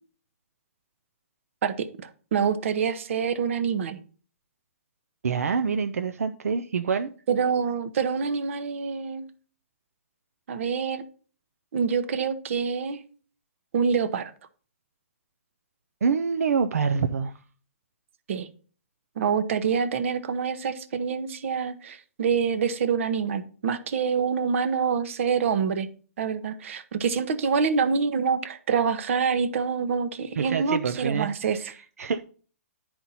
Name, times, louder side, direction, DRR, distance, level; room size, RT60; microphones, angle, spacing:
voice 1, 1.6-4.0 7.3-9.3 10.5-11.0 11.7-13.0 13.7-14.3 18.3-18.5 19.2-25.9 26.2-31.6, right 6 dB, 60° right, 12 dB, 0.9 m, -26 dB
voice 2, 5.2-7.1 16.0-17.3 30.4-31.3 31.6-32.2, right 5 dB, 85° right, 8 dB, 0.5 m, -26 dB
10.0 x 4.4 x 4.0 m, 0.41 s
hypercardioid pair, 145°, 8 cm